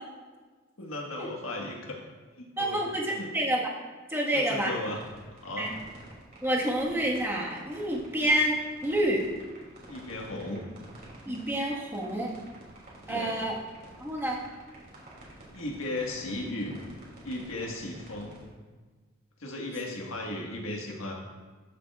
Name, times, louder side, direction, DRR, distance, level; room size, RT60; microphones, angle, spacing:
voice 1, 0.8-2.0 2.4-2.8 3.1-3.3 4.3-5.0 5.3-5.7 9.9-10.6 13.1-13.5 15.5-16.8 17.2-18.4 19.4-21.1, left 2 dB, 85° left, -1 dB, 1.6 m, -36 dB
voice 2, 2.6-3.7 4.1-4.7 5.6-5.7 6.4-9.2 11.3-12.3 13.1-13.5 14.0-14.4, right 1 dB, 10° right, -4 dB, 1.5 m, -28 dB
sound 1, 4.8-18.4, right 1 dB, 50° right, 2.8 m, -50 dB
13.0 x 7.4 x 2.4 m, 1.4 s
head